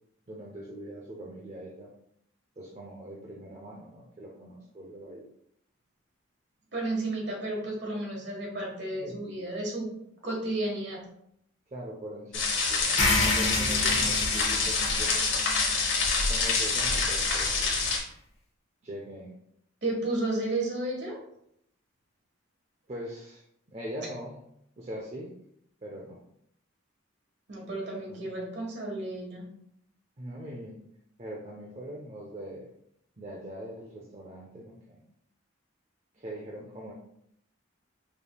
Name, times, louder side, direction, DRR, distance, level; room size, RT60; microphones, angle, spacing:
voice 1, 0.3-1.9 2.6-5.2 9.0-9.2 11.7-15.8 16.3-17.6 18.8-19.3 22.9-23.4 23.7-24.4 24.8-25.3 25.8-26.2 28.1-28.3 30.2-30.8 31.2-32.7 33.2-35.0 36.1-36.9, right 1 dB, 30° right, -3 dB, 0.5 m, -41 dB
voice 2, 6.7-9.9 10.2-11.0 19.8-21.2 27.5-29.5, right 2 dB, 55° right, -1 dB, 1.4 m, -32 dB
sound 1, 12.3-18.0, left 4 dB, 60° left, 1.1 m, -26 dB
sound 2, 13.0-17.1, left 2 dB, 30° left, 0.9 m, -31 dB
5.2 x 3.3 x 2.3 m, 0.73 s
head